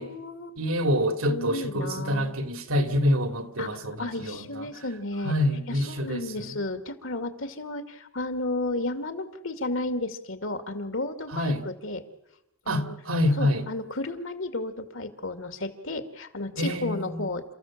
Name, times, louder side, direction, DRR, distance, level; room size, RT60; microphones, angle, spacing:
voice 1, 0.0-0.6 1.3-2.3 3.6-5.3 5.7-12.0 12.7-12.9 13.4-17.4, left 2 dB, 65° left, 2.4 m, -33 dB
voice 2, 0.6-4.7 5.2-6.6 11.3-11.7 12.7-13.7 16.6-17.3, left 1 dB, 80° right, 2.6 m, -27 dB
29.5 x 15.0 x 7.5 m
head